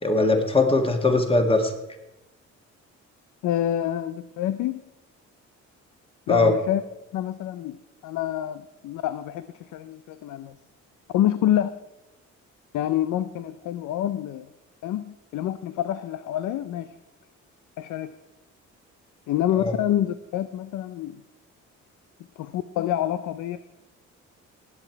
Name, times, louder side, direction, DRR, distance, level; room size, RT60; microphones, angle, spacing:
voice 1, 0.0-1.7 6.3-6.5 19.6-19.7, left 2 dB, 20° left, 5 dB, 1.9 m, -20 dB
voice 2, 3.4-4.8 6.3-6.8 7.1-7.8 8.0-10.5 11.1-11.7 12.7-14.5 14.8-16.9 17.8-18.1 19.3-21.2 22.4-23.6, left 12 dB, 80° left, 13 dB, 0.6 m, -27 dB
19.0 x 8.1 x 4.6 m, 0.95 s
cardioid pair, 90°, 30 cm